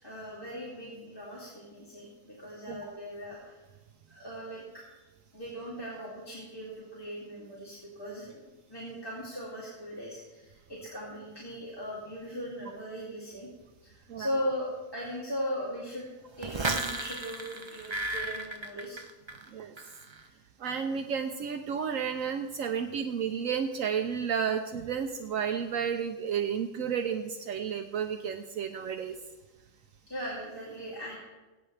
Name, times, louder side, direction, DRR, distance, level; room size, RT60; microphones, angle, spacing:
voice 1, 0.0-3.6 4.1-4.8 5.3-8.4 8.7-13.5 13.8-16.1 16.4-19.0 30.1-31.2, equal, 15° left, -8 dB, 2.5 m, -38 dB
sound 1, 16.4-19.5 19.8-20.2, right 2 dB, 40° right, 0.4 m, -34 dB
voice 2, 20.6-29.1, right 7 dB, 70° right, 6 dB, 1.1 m, -32 dB
20.5 x 9.0 x 3.3 m, 1.1 s
omnidirectional pair, 1.5 m